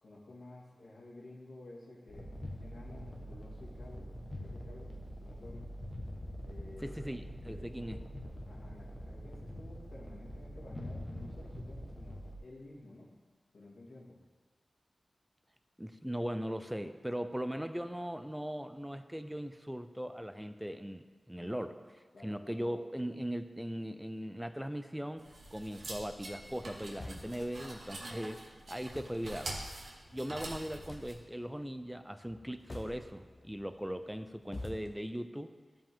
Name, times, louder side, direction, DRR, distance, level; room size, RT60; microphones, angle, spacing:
voice 1, 0.0-4.1 4.4-5.6 6.4-7.2 7.4-8.1 8.5-13.1 13.5-14.2 21.4-21.8 22.1-22.6, left 2 dB, 85° left, -5 dB, 2.1 m, -53 dB
sound 1, 2.1-12.4, equal, 30° left, 1.2 m, -44 dB
voice 2, 6.8-8.0 15.8-21.8 22.2-29.5 30.1-35.5, equal, 5° right, 9 dB, 0.5 m, -39 dB
sound 2, 25.2-31.1, right 1 dB, 70° right, 1.4 m, -45 dB
sound 3, 26.8-35.0, left 2 dB, 45° left, 0.9 m, -51 dB
12.5 x 5.2 x 3.7 m, 1.4 s
wide cardioid pair, 65°, 0 cm